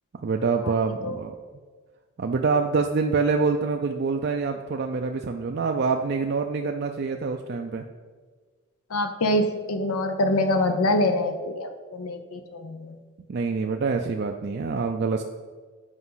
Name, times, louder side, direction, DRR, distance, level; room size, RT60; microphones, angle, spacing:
voice 1, 0.2-1.3 2.2-7.8 13.3-15.2, right 4 dB, 50° right, 4 dB, 0.4 m, -26 dB
voice 2, 8.9-13.0, left 1 dB, 90° left, 7 dB, 0.6 m, -25 dB
8.1 x 5.2 x 5.6 m, 1.4 s
head